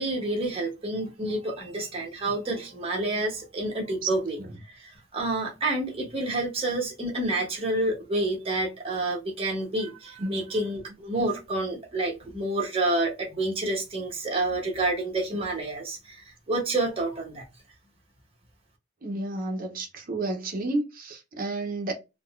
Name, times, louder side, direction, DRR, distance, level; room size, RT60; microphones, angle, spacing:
voice 1, 0.0-4.4 4.7-17.5, right 2 dB, 30° right, 1.0 m, -29 dB
voice 2, 19.0-21.9, right 2 dB, 50° right, 0.6 m, -31 dB
3.7 x 2.1 x 2.3 m
head